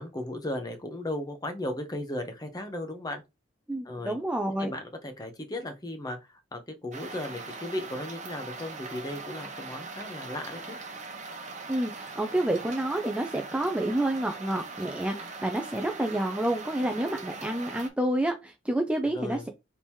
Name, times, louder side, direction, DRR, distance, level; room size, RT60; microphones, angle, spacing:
voice 1, 0.0-3.2 3.8-4.2 4.6-10.8 19.0-19.5, left 1 dB, 20° left, 0.8 m, -36 dB
voice 2, 3.7-4.7 11.7-19.5, right 1 dB, 5° right, 0.4 m, -29 dB
sound 1, 6.9-17.9, right 3 dB, 40° right, 0.9 m, -41 dB
3.6 x 2.9 x 4.4 m
head